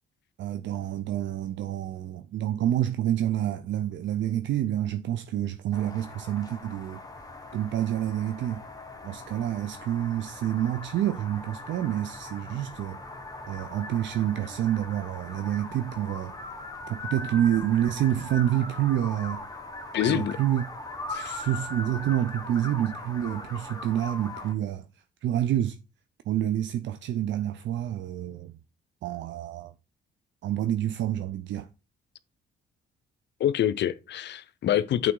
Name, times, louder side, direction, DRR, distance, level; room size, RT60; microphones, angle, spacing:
voice 1, 0.4-7.2 7.5-8.6 9.0-13.0 13.5-16.3 16.9-19.4 20.1-20.6 21.2-24.8 25.2-25.8 26.3-28.5 29.0-29.7 30.4-31.7, right 11 dB, 70° right, 0.5 m, -28 dB
sound 1, 5.7-24.5, left 2 dB, 20° left, 1.2 m, -40 dB
voice 2, 19.9-20.4 21.1-21.4 33.4-35.1, left 11 dB, 60° left, 0.5 m, -26 dB
8.6 x 3.5 x 3.8 m
cardioid pair, 90°, 20 cm